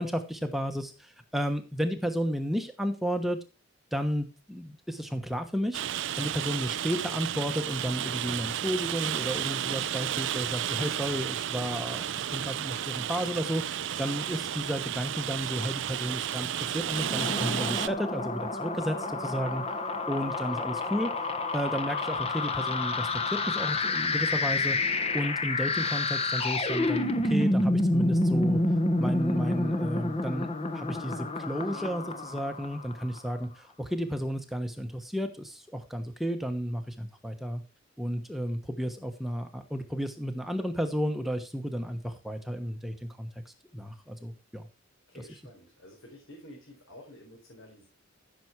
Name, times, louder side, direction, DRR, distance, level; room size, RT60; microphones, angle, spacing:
voice 1, 0.0-3.4 3.9-12.0 12.3-19.6 20.1-21.1 21.5-28.6 29.0-37.6 38.0-44.7, equal, ahead, 5 dB, 1.1 m, -33 dB
Rain, 5.7-17.9, right 10 dB, 60° right, 0.5 m, -32 dB
sound 1, 16.8-33.2, left 2 dB, 30° left, 1.2 m, -29 dB
voice 2, 45.1-47.9, left 1 dB, 75° left, 0 dB, 4.4 m, -50 dB
15.5 x 7.1 x 4.6 m, 0.29 s
head